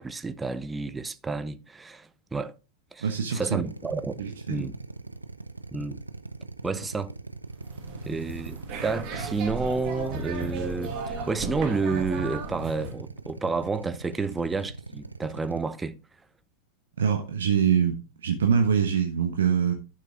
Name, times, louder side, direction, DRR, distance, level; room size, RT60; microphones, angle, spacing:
voice 1, 0.0-2.5 2.9-4.7 5.7-6.0 6.6-7.1 8.0-16.0, right 4 dB, 10° right, 0.8 m, -30 dB
voice 2, 3.0-3.6 4.2-4.7 17.0-19.7, right 7 dB, 65° right, 1.2 m, -24 dB
Drill, 3.6-15.6, right 3 dB, 80° right, 0.6 m, -41 dB
sound 1, 7.5-13.0, right 4 dB, 35° right, 2.8 m, -35 dB
11.5 x 6.5 x 3.8 m
figure-of-eight pair, 90°, 0 cm